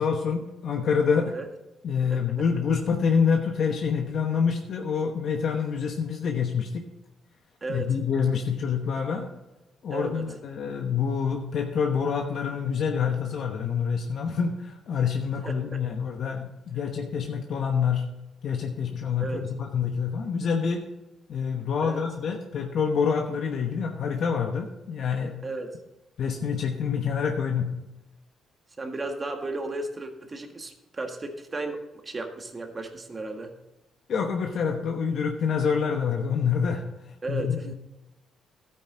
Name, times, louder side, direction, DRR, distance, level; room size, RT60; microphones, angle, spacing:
voice 1, 0.0-1.3 1.8-6.9 7.7-9.3 9.8-18.0 18.4-20.8 21.3-25.4 26.2-27.7 34.1-37.7, left 6 dB, 65° left, 3 dB, 1.0 m, -27 dB
voice 2, 7.6-7.9 9.9-10.2 15.4-15.8 19.2-19.4 21.8-22.0 25.4-25.7 28.8-33.5 37.2-37.7, right 2 dB, 30° right, 5 dB, 1.6 m, -34 dB
12.5 x 9.0 x 3.8 m, 0.98 s
cardioid pair, 90°, 0 cm